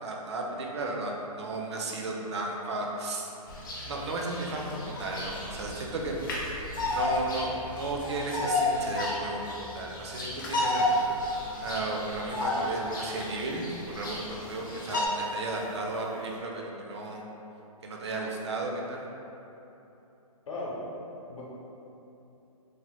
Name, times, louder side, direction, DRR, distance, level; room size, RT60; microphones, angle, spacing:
voice 1, 0.0-3.3 3.9-6.2 6.9-10.9 11.2-11.3 11.6-17.2 17.8-19.1, right 2 dB, 50° right, 0 dB, 0.4 m, -34 dB
Bird vocalization bird call bird song, 3.5-15.1, left 2 dB, 35° left, 0.5 m, -32 dB
sound 1, 10.3-16.4, equal, 85° right, 1.0 m, -50 dB
voice 2, 20.5-20.8 21.1-21.4, left 2 dB, 60° left, -5 dB, 0.8 m, -37 dB
3.2 x 2.1 x 2.9 m, 3.0 s
hypercardioid pair, 175°, 19 cm